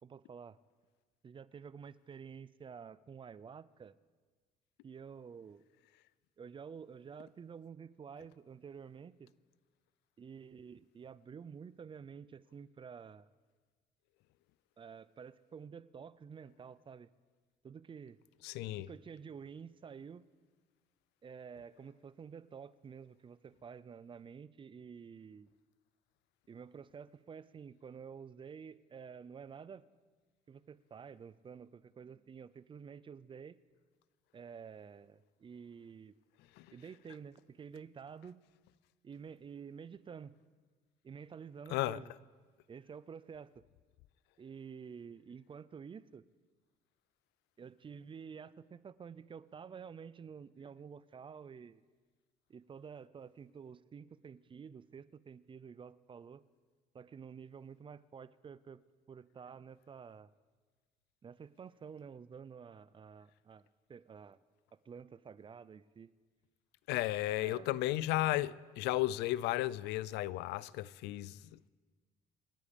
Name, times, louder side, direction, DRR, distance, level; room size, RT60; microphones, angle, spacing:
voice 1, 0.0-0.6 1.2-3.9 4.8-5.6 6.4-9.3 10.2-13.3 14.8-17.1 17.6-18.2 18.7-20.3 21.2-25.5 26.5-29.8 30.5-33.6 34.3-36.2 36.7-38.4 39.0-40.4 41.0-42.1 42.7-43.5 44.4-46.3 47.6-51.8 52.5-56.4 56.9-58.8 59.1-60.3 61.2-64.4 64.8-66.1 67.3-67.7, right 6 dB, 30° right, 0.5 m, -50 dB
voice 2, 18.4-18.9 36.6-36.7 41.7-42.0 66.9-71.7, left 16 dB, 90° left, 0.5 m, -34 dB
27.5 x 9.8 x 5.3 m
cardioid pair, 110°, 17 cm